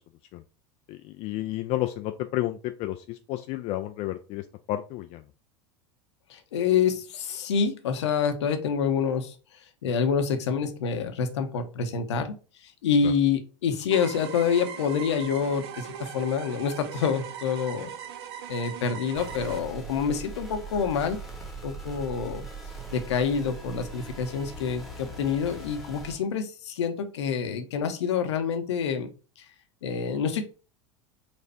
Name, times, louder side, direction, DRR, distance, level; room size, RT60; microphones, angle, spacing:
voice 1, 0.9-5.2 13.0-13.1, left 15 dB, 40° left, 7 dB, 0.4 m, -31 dB
voice 2, 6.3-9.4 9.8-12.3 12.6-17.9 18.5-21.2 21.6-22.5 22.9-29.1 29.4-29.5 29.8-30.5, left 6 dB, 70° left, 7 dB, 0.8 m, -27 dB
sound 1, 13.9-19.6, right 9 dB, 60° right, 0.6 m, -40 dB
sound 2, 19.1-26.2, right 3 dB, ahead, 1.3 m, -40 dB
4.3 x 2.5 x 4.2 m, 0.33 s
figure-of-eight pair, 80°, 15 cm